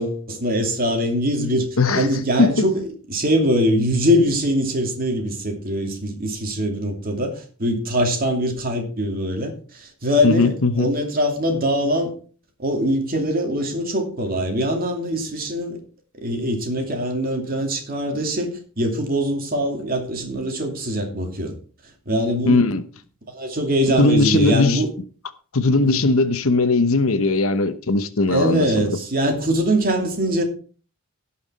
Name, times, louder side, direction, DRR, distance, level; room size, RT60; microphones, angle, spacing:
voice 1, 0.0-1.7 1.9-12.1 12.6-15.8 16.2-21.5 22.1-22.6 23.3-24.9 25.8-26.0 28.3-30.4, equal, 45° right, 2.7 m, -22 dB
voice 2, 1.8-2.1 2.4-2.5 10.2-10.9 22.5-22.8 24.0-24.8 25.5-29.0, left 3 dB, 80° left, 1.0 m, -19 dB
17.5 x 5.8 x 4.2 m
head